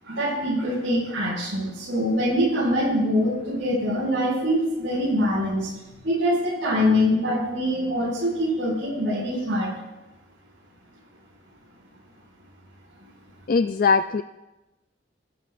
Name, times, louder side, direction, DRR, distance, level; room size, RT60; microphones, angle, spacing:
voice 1, 0.0-5.7 6.0-9.7, equal, 80° right, -9 dB, 6.0 m, -24 dB
voice 2, 13.5-14.2, left 4 dB, 45° left, 10 dB, 0.3 m, -20 dB
23.0 x 13.0 x 2.5 m, 1.1 s
head